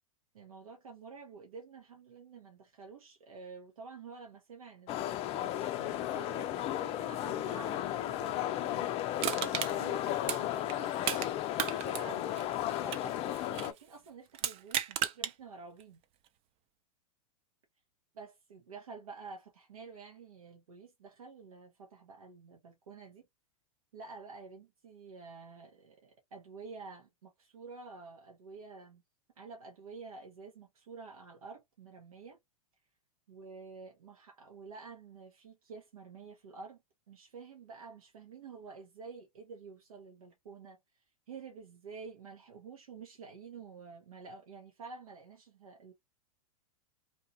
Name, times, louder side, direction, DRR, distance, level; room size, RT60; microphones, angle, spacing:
voice 1, 0.3-11.2 11.8-12.6 12.8-13.2 13.5-16.0 18.1-23.3 23.9-29.0 29.4-32.4 33.3-36.8 37.1-40.8 41.3-45.9, right 4 dB, 80° right, 1.1 m, -49 dB
sound 1, 4.9-13.7, left 12 dB, 35° left, 0.4 m, -34 dB
Crushing, 9.2-11.3 11.6-13.8 14.3-15.3 15.8-15.9, right 10 dB, 35° right, 0.5 m, -35 dB
2.8 x 2.4 x 2.7 m
hypercardioid pair, 105°, 18 cm